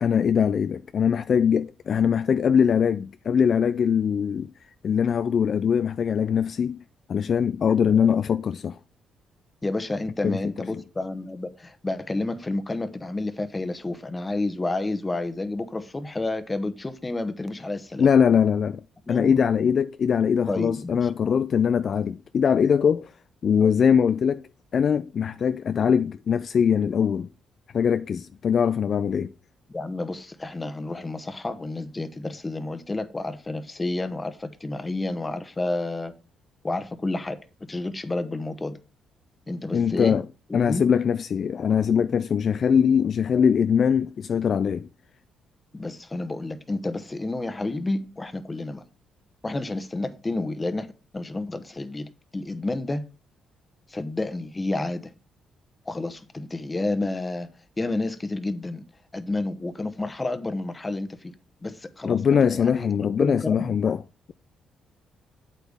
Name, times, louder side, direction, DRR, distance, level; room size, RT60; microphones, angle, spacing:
voice 1, 0.0-4.5 4.8-6.8 7.1-8.8 10.2-10.4 10.7-10.8 18.0-18.8 19.1-23.1 23.4-24.4 24.7-27.3 27.7-29.3 39.7-40.2 40.5-44.9 62.0-64.0, left 7 dB, 55° left, 0.3 m, -22 dB
voice 2, 9.6-18.1 19.1-19.3 20.5-21.1 29.7-36.1 36.6-37.4 37.7-38.8 39.5-40.2 40.5-40.8 45.7-48.8 49.4-50.9 51.1-53.0 53.9-55.1 55.9-57.5 57.8-58.8 59.1-61.3 61.6-63.8, left 2 dB, 20° left, 1.1 m, -30 dB
8.1 x 8.1 x 3.6 m
cardioid pair, 90°, 0 cm